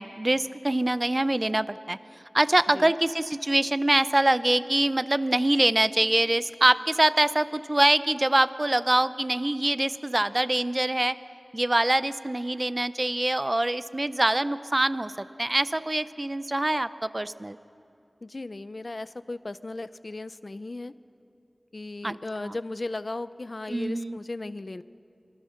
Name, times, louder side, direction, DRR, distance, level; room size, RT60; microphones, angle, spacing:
voice 1, 0.0-2.0 2.3-11.2 11.5-17.6 22.0-22.6 23.7-24.2, right 1 dB, 30° right, 14 dB, 0.6 m, -24 dB
voice 2, 18.2-20.9 21.7-24.8, left 2 dB, 55° left, 14 dB, 0.6 m, -36 dB
25.5 x 23.0 x 6.5 m, 2.6 s
wide cardioid pair, 65°, 0 cm